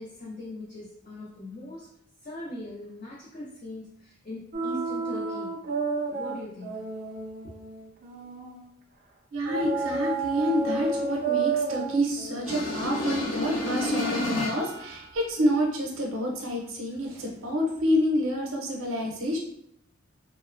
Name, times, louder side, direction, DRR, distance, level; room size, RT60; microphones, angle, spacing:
voice 1, 0.0-1.9 2.2-5.6 6.1-6.9 7.4-7.5, left 1 dB, 40° left, -6 dB, 0.4 m, -40 dB
sound 1, 4.5-8.7 9.4-14.2, right 4 dB, 40° right, 0.3 m, -32 dB
voice 2, 9.3-19.4, equal, 85° right, 0 dB, 0.6 m, -28 dB
sound 2, 12.4-14.9, left 2 dB, 80° left, 0.7 m, -29 dB
2.9 x 2.0 x 2.4 m, 0.71 s
head